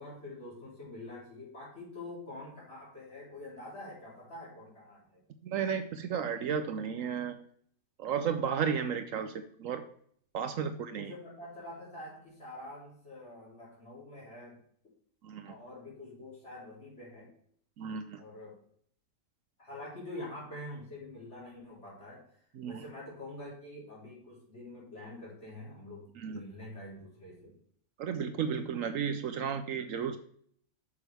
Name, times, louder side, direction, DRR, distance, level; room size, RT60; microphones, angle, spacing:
voice 1, 0.0-5.2 10.6-14.6 15.5-17.3 18.2-18.6 19.6-22.2 22.7-27.6, left 1 dB, 50° left, -6 dB, 4.0 m, -46 dB
voice 2, 5.4-7.3 8.0-9.3 9.6-9.8 10.3-11.1 15.2-15.5 17.8-18.2 22.6-22.8 26.2-26.4 28.0-30.2, right 7 dB, 70° right, 9 dB, 1.0 m, -33 dB
8.4 x 6.4 x 3.4 m, 0.62 s
omnidirectional pair, 1.5 m